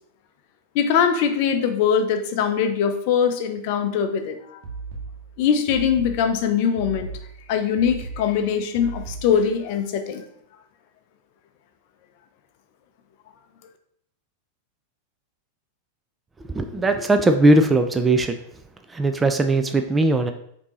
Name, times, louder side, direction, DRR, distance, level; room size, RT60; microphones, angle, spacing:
voice 1, 0.7-4.6 5.4-7.1 7.5-10.2, left 7 dB, 45° left, 8 dB, 0.5 m, -22 dB
sound 1, 4.6-9.6, right 4 dB, 50° right, 1.0 m, -37 dB
voice 2, 16.5-18.4 18.9-20.3, right 2 dB, 15° right, 6 dB, 0.3 m, -19 dB
5.1 x 2.7 x 3.0 m, 0.70 s
figure-of-eight pair, 90°, 0 cm